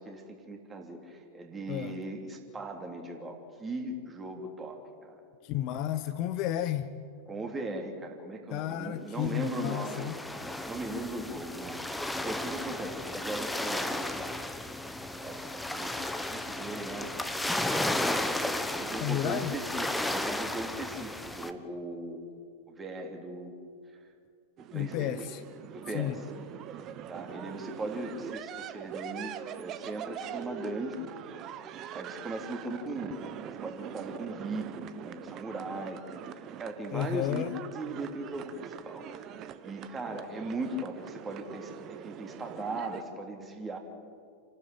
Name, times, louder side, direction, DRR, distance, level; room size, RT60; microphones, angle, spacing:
voice 1, 0.0-5.2 7.3-10.2 10.4-14.4 15.2-17.1 18.0-22.4 22.7-23.5 24.7-25.2 25.7-26.2 26.7-26.8 27.1-31.1 31.9-33.1 33.4-37.4 37.7-39.3 39.6-43.8, right 2 dB, 20° right, 3 dB, 3.3 m, -39 dB
voice 2, 5.4-6.9 8.5-10.2 19.0-19.6 24.7-25.4 25.9-26.2 36.9-37.5, left 12 dB, 40° left, 11 dB, 0.9 m, -32 dB
sound 1, 9.2-21.5, left 1 dB, 5° left, 1.2 m, -34 dB
sound 2, 24.6-43.0, right 9 dB, 35° right, 1.2 m, -43 dB
29.0 x 12.5 x 8.8 m, 2.2 s
figure-of-eight pair, 90°, 0 cm